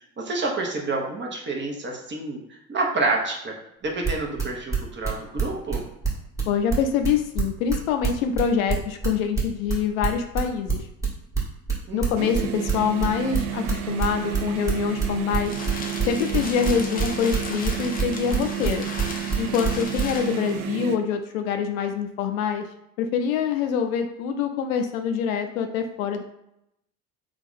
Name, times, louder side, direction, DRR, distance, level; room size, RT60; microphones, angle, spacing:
voice 1, 0.2-2.4 2.7-3.5 3.8-5.8 11.9-12.3, right 3 dB, 25° right, 0 dB, 0.9 m, -28 dB
sound 1, 3.9-20.1, right 6 dB, 5° right, 1.4 m, -25 dB
voice 2, 6.5-10.9 11.9-15.6 16.0-18.9 19.4-22.7 23.0-26.2, left 7 dB, 70° left, 6 dB, 0.6 m, -25 dB
sound 2, 12.2-21.0, right 11 dB, 45° right, 0.4 m, -31 dB
sound 3, 15.0-20.6, left 3 dB, 20° left, 0.6 m, -37 dB
3.5 x 2.4 x 3.6 m, 0.81 s
figure-of-eight pair, 65°, 43 cm